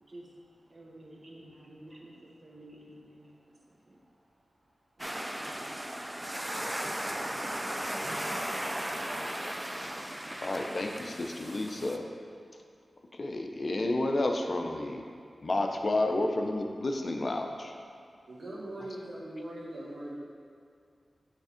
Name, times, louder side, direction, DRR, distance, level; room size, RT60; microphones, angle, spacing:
voice 1, 0.1-4.0 5.0-6.0, right 1 dB, 50° right, -2 dB, 1.1 m, -52 dB
sound 1, 5.0-12.0, right 1 dB, 15° right, 0.4 m, -36 dB
voice 2, 10.4-12.0 13.2-15.0 15.4-17.7, left 2 dB, 55° left, 3 dB, 0.5 m, -31 dB
voice 3, 18.3-20.1, right 1 dB, 85° right, -7 dB, 1.5 m, -41 dB
6.8 x 3.4 x 5.0 m, 2.3 s
cardioid pair, 45°, 0 cm